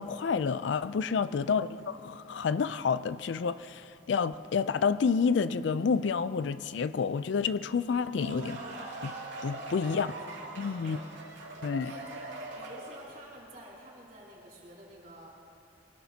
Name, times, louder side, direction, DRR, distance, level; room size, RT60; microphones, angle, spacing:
voice 1, 0.0-8.6 9.0-9.1 9.4-10.1 10.6-11.0 11.6-11.9, left 5 dB, 70° left, 15 dB, 0.4 m, -29 dB
voice 2, 1.1-1.5 9.7-11.2 11.8-12.2 12.5-15.3, right 1 dB, 40° right, -4 dB, 4.0 m, -50 dB
sound 1, 7.9-13.2, right 2 dB, 80° right, 2.4 m, -42 dB
22.5 x 18.5 x 2.8 m, 2.7 s
head